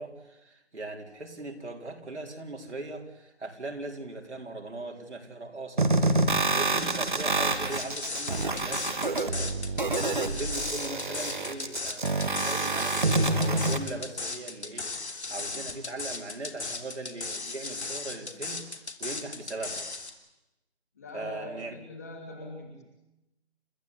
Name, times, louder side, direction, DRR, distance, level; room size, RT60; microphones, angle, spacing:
voice 1, 0.0-5.9 6.5-9.5 9.9-18.6 19.0-19.8 21.1-21.7, right 2 dB, 80° right, 2 dB, 4.5 m, -39 dB
sound 1, 5.8-13.8, right 2 dB, 45° right, 1.8 m, -27 dB
sound 2, 7.7-20.1, left 3 dB, 75° left, 3.2 m, -36 dB
voice 2, 20.9-22.8, left 1 dB, 15° left, 0 dB, 2.9 m, -41 dB
30.0 x 14.5 x 8.7 m, 0.94 s
figure-of-eight pair, 180°, 34 cm